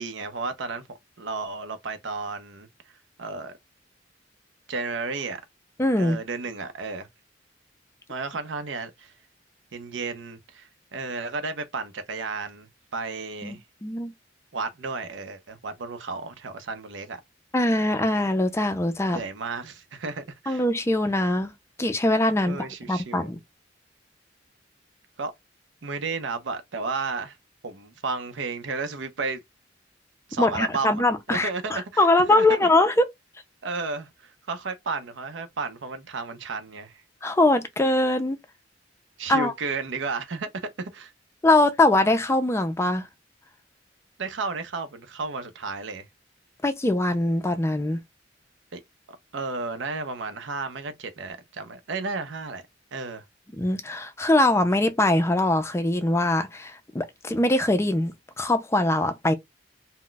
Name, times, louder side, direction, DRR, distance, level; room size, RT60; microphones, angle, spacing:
voice 1, 0.0-2.7 3.2-3.5 4.7-5.4 6.0-7.1 8.1-9.1 9.7-13.6 14.5-17.2 19.1-20.6 22.4-23.3 25.2-25.3 25.8-27.4 27.6-29.4 30.3-31.0 31.3-32.7 33.6-37.0 39.2-41.1 44.2-46.1 48.7-48.8 49.3-52.6 52.9-53.2, right 4 dB, 75° right, 0.6 m, -33 dB
voice 2, 5.8-6.2 13.4-14.1 17.5-19.2 20.5-21.5 21.8-23.4 30.4-33.1 37.2-38.4 39.3-39.5 41.4-43.1 46.6-48.0 53.6-59.3, left 2 dB, 15° left, 0.4 m, -22 dB
2.3 x 2.1 x 3.8 m
head